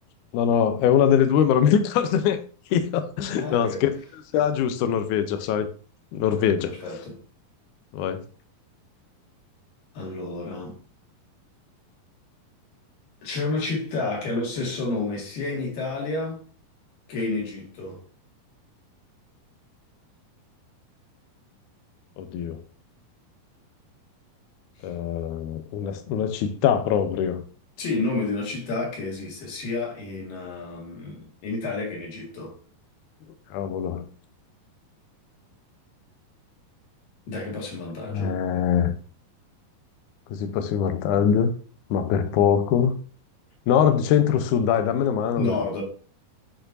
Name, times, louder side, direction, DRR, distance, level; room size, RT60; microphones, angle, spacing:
voice 1, 0.3-2.4 2.7-4.0 4.3-5.7 6.1-6.8 7.9-8.2 22.2-22.6 24.8-27.4 33.5-34.1 38.1-38.9 40.3-41.5 41.9-43.0 43.7-45.6, left 8 dB, 80° left, 1.8 m, -22 dB
voice 2, 3.4-3.9 6.2-7.2 10.0-10.8 13.2-16.4 17.1-18.0 27.8-32.6 37.3-38.4 45.4-45.8, left 3 dB, 65° left, 3.6 m, -30 dB
10.5 x 4.4 x 2.6 m
omnidirectional pair, 4.3 m